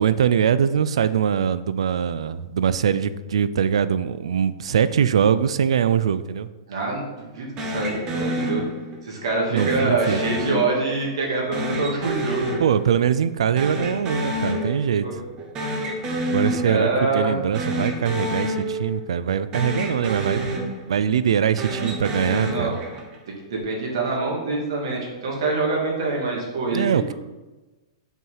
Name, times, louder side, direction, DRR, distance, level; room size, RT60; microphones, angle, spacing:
voice 1, 0.0-6.5 9.5-10.2 12.6-15.1 16.3-20.6 20.9-22.8 26.7-27.1, right 8 dB, 85° right, 14 dB, 0.4 m, -22 dB
voice 2, 6.7-8.6 9.0-12.6 15.0-15.2 16.6-17.3 22.3-22.7 23.5-26.8, right 3 dB, 65° right, -2 dB, 2.1 m, -25 dB
sound 1, 7.6-9.1 9.6-11.1 11.5-13.3 13.6-15.1 15.4-17.1 17.5-19.3 19.5-21.1 21.5-23.2, equal, 20° right, 1.0 m, -29 dB
5.7 x 4.6 x 5.6 m, 1.1 s
hypercardioid pair, 165°, 3 cm